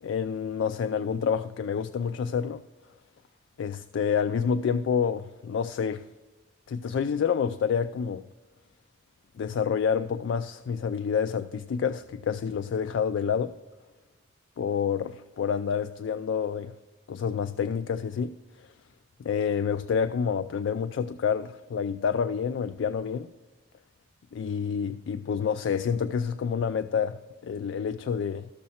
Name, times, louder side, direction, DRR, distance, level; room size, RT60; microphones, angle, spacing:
voice 1, 0.0-2.6 3.6-6.1 6.7-8.3 9.4-13.6 14.6-16.7 17.1-18.7 19.2-23.3 24.3-28.5, left 6 dB, 80° left, 0.3 m, -28 dB
13.5 x 6.4 x 4.2 m
head